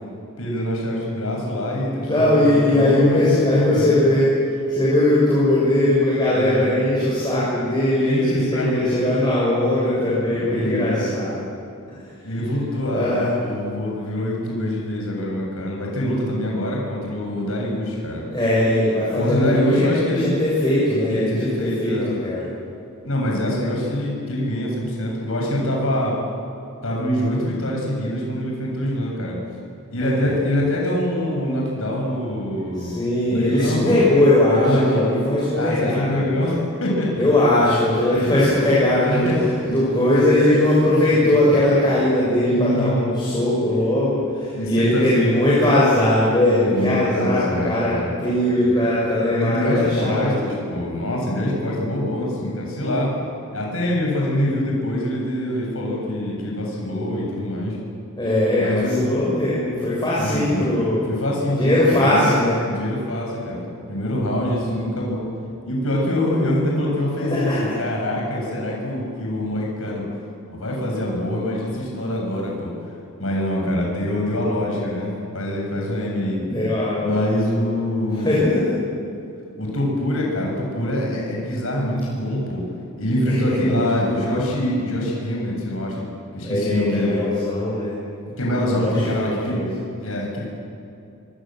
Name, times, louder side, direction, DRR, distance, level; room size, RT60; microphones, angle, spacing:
voice 1, 0.4-4.0 6.3-6.7 8.0-9.0 10.2-11.1 12.2-18.2 19.1-20.3 21.1-22.1 23.0-26.2 26.8-29.4 29.9-33.0 33.3-34.0 34.5-35.1 35.5-37.2 38.2-38.3 39.0-39.4 40.1-40.6 41.2-41.3 42.5-43.0 44.5-45.2 46.6-48.1 49.3-53.1 53.5-57.8 58.6-59.1 60.2-60.7 61.1-62.4 62.6-65.3 65.7-70.1 70.5-72.7 73.2-76.4 77.0-78.4 79.6-82.6 83.0-87.2 88.4-89.6 90.0-90.5, left 1 dB, 65° left, -2 dB, 7.5 m, -24 dB
voice 2, 2.0-4.3 4.7-11.4 12.9-13.3 18.3-22.5 30.0-30.1 32.7-36.2 37.1-39.3 39.6-50.5 58.2-61.0 61.5-62.5 67.3-67.7 76.4-77.3 78.1-78.7 83.2-84.3 86.4-87.9 88.6-89.7, left 1 dB, 20° left, -8 dB, 6.6 m, -20 dB
27.5 x 24.5 x 7.8 m, 2.6 s
head